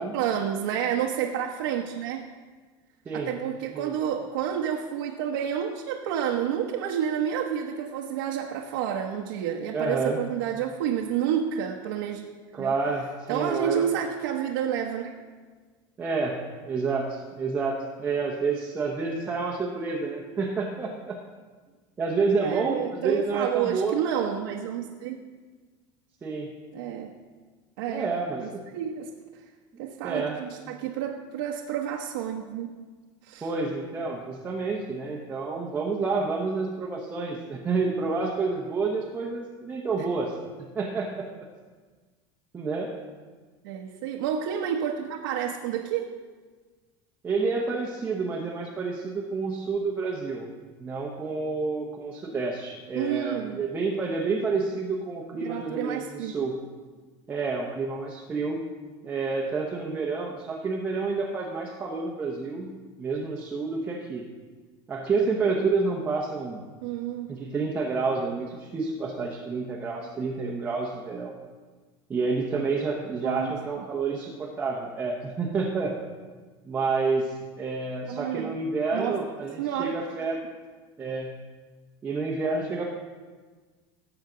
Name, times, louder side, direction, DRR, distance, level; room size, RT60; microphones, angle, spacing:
voice 1, 0.0-2.2 3.1-12.3 12.6-12.7 13.3-15.1 22.3-25.2 26.7-27.2 27.8-28.1 28.4-29.1 29.8-32.7 33.2-33.5 43.6-46.1 52.9-53.6 55.4-56.3 66.8-67.3 73.2-73.5 78.1-78.6 78.9-79.2 79.6-80.0, right 9 dB, 90° right, 0 dB, 1.0 m, -29 dB
voice 2, 9.7-10.2 12.5-14.0 16.0-21.2 22.0-24.0 26.2-26.5 27.9-28.7 30.0-30.4 33.4-41.3 42.5-43.0 47.2-50.5 50.8-56.6 57.3-58.6 59.0-64.2 64.9-66.6 67.3-71.3 72.1-76.0 76.6-80.4 81.0-81.4 82.0-82.9, right 4 dB, 15° right, -1 dB, 0.8 m, -29 dB
18.0 x 7.9 x 3.8 m, 1.4 s
cardioid pair, 175°, 11 cm